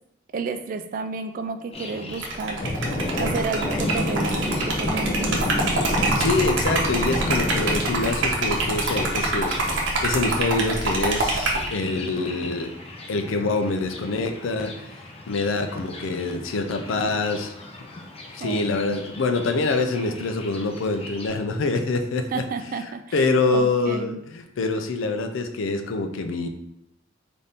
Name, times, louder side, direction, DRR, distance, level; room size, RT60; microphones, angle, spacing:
voice 1, 0.3-2.6 3.2-5.4 18.4-19.0 20.0-20.3 22.3-23.2 23.5-24.2, right 4 dB, 45° right, 8 dB, 0.3 m, -31 dB
Thunder, 1.7-21.3, left 1 dB, 30° left, 0.5 m, -32 dB
Liquid, 2.1-11.7, right 2 dB, 75° right, 0.8 m, -25 dB
voice 2, 6.2-12.7 13.1-14.8 15.3-17.5 18.3-22.4 23.1-26.5, left 3 dB, 85° left, 6 dB, 0.4 m, -25 dB
4.1 x 2.6 x 3.4 m, 0.80 s
head